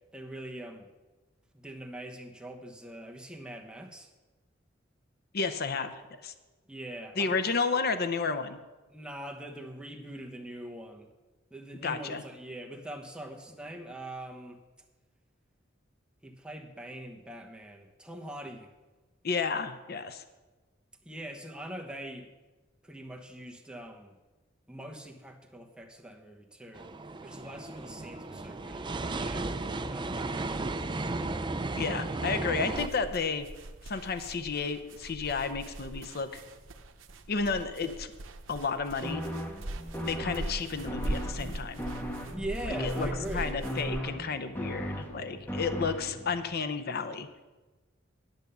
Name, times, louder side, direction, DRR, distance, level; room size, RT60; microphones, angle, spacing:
voice 1, 0.1-0.9 1.5-4.1 6.7-7.5 8.9-11.1 11.5-14.6 16.2-18.7 21.0-22.3 22.8-24.2 24.7-26.9 27.2-31.1 42.3-43.6, right 1 dB, 5° right, 1 dB, 1.1 m, -43 dB
voice 2, 5.3-6.3 7.2-8.6 11.8-12.2 19.2-20.2 31.8-33.5 33.8-36.4 37.3-38.1 38.5-39.2 40.1-41.8 42.7-47.3, left 4 dB, 55° left, 10 dB, 0.7 m, -32 dB
sound 1, 26.7-32.9, right 2 dB, 25° right, 0.5 m, -34 dB
sound 2, 32.7-44.0, right 1 dB, 90° right, 0.8 m, -41 dB
sound 3, 39.0-46.4, equal, 10° left, 1.3 m, -37 dB
10.5 x 7.2 x 6.8 m, 1.2 s
head